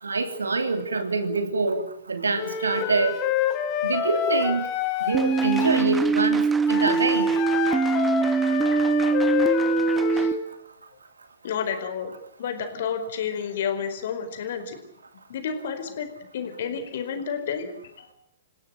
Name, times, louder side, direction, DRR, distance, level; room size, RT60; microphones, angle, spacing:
voice 1, 0.0-3.2 3.8-4.7 5.0-7.4, right 3 dB, 75° right, 9 dB, 3.0 m, -25 dB
Wind instrument woodwind instrument, 2.4-5.9 6.7-10.4, left 9 dB, 35° left, 3.9 m, -27 dB
sound 1, 5.1-10.3, right 5 dB, 10° right, 1.5 m, -23 dB
voice 2, 11.4-12.1 12.4-14.8 15.3-16.1 16.3-18.1, left 7 dB, 55° left, 9 dB, 4.6 m, -30 dB
28.5 x 16.5 x 9.2 m, 0.75 s
figure-of-eight pair, 110°, 0 cm